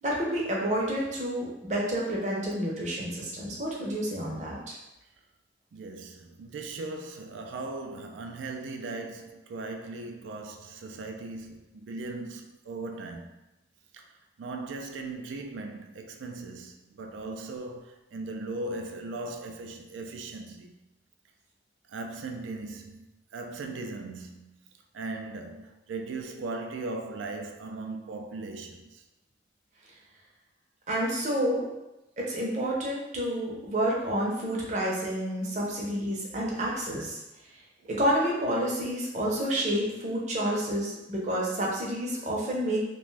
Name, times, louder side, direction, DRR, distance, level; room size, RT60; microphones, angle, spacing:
voice 1, 0.0-4.8 30.9-31.7 32.2-37.2 37.9-42.8, right 1 dB, 40° right, 0.6 m, -29 dB
voice 2, 5.7-13.4 13.9-20.7 21.9-24.6 24.9-29.0 37.8-37.9, right 3 dB, 90° right, 0.3 m, -38 dB
2.5 x 2.2 x 3.2 m
head